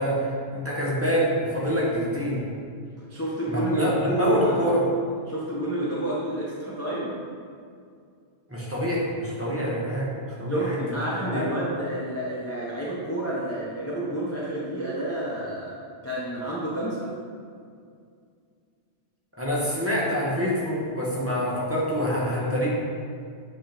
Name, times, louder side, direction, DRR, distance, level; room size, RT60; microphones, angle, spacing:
voice 1, 0.0-2.4 3.5-4.8 8.5-10.1 10.4-10.8 11.2-11.5 19.4-22.7, equal, 15° right, -7 dB, 1.1 m, -26 dB
voice 2, 3.1-4.6 5.3-7.2 10.5-17.1, right 1 dB, 15° left, -7 dB, 0.7 m, -29 dB
8.4 x 3.7 x 3.4 m, 2.3 s
omnidirectional pair, 1.1 m